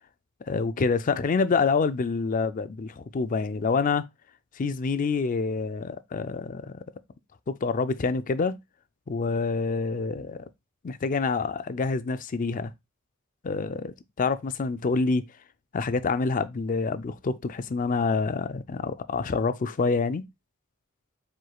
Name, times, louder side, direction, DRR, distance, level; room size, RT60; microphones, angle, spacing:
voice 1, 0.5-4.0 4.6-6.8 7.5-8.6 9.1-10.5 10.8-12.7 13.4-15.2 15.7-20.2, left 4 dB, 40° left, 0.4 m, -27 dB
4.8 x 4.4 x 2.3 m
head